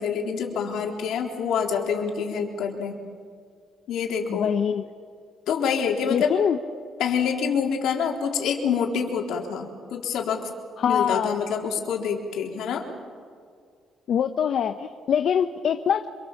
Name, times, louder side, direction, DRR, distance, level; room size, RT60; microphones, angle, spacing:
voice 1, 0.0-3.0 3.9-4.5 5.5-6.3 7.0-10.5 10.9-12.8, left 6 dB, 80° left, 1 dB, 3.7 m, -26 dB
voice 2, 4.3-4.8 6.1-6.6 10.8-11.3 14.1-16.1, left 8 dB, 65° left, 8 dB, 1.0 m, -23 dB
26.5 x 24.0 x 7.4 m, 2.1 s
cardioid pair, 90°, 0 cm